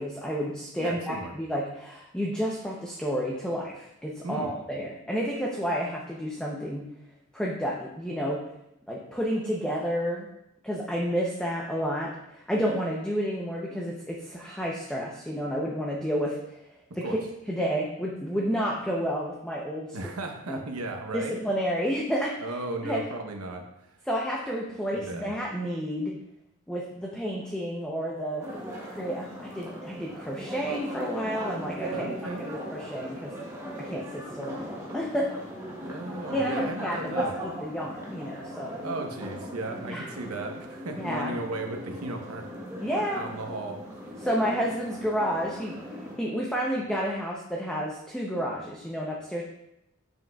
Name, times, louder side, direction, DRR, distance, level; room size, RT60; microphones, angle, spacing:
voice 1, 0.0-6.8 7.3-8.4 8.9-10.3 10.6-16.6 17.0-17.1 17.5-20.0 20.5-20.6 21.1-22.3 22.8-23.0 24.1-26.1 26.7-28.5 28.9-32.1 32.4-33.3 33.8-35.3 36.3-38.8 39.8-40.1 41.0-41.4 42.8-43.2 44.2-45.8 46.2-49.4, equal, 5° left, -3 dB, 0.6 m, -30 dB
voice 2, 0.8-1.3 4.2-4.5 17.0-17.2 19.9-21.3 22.4-23.6 24.9-25.3 31.9-32.4 35.8-37.3 38.8-42.4 43.1-43.8, right 2 dB, 80° right, 3 dB, 0.9 m, -35 dB
sound 1, 28.4-46.2, equal, 15° right, 1.1 m, -38 dB
7.2 x 5.9 x 2.3 m, 0.84 s
head